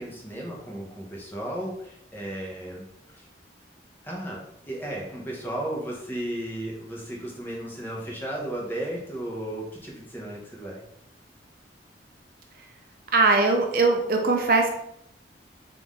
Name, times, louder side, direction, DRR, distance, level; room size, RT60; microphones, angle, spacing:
voice 1, 0.0-2.8 3.2-3.3 4.0-4.4 4.7-10.8, right 1 dB, 10° left, -3 dB, 1.0 m, -34 dB
voice 2, 13.1-14.7, right 3 dB, 50° right, 2 dB, 0.6 m, -20 dB
3.8 x 3.7 x 3.6 m, 0.76 s
head